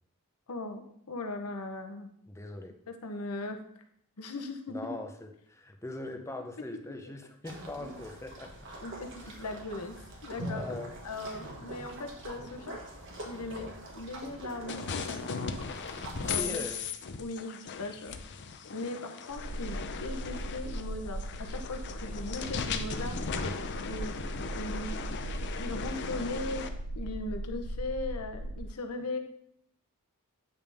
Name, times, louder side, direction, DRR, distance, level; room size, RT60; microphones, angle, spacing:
voice 1, 0.5-2.1 2.9-3.6 4.2-4.9 7.0-7.1 7.8-7.9 8.8-9.9 10.2-10.7 11.0-12.8 13.3-13.7 13.9-15.2 16.2-16.6 17.2-18.2 18.7-24.2 24.5-25.0 25.3-26.7 26.9-29.2, left 2 dB, 90° left, 6 dB, 0.9 m, -38 dB
voice 2, 2.3-2.8 4.7-8.6 9.2-9.5 10.4-11.0 13.6-13.7 16.2-16.9, left 2 dB, 15° left, 5 dB, 0.6 m, -41 dB
sound 1, 7.4-16.8, right 1 dB, 60° right, 1.4 m, -44 dB
sound 2, 14.7-26.7, left 5 dB, 50° left, 0.5 m, -38 dB
sound 3, 19.3-28.7, right 1 dB, 75° right, 0.5 m, -38 dB
8.8 x 5.3 x 3.4 m, 0.71 s
head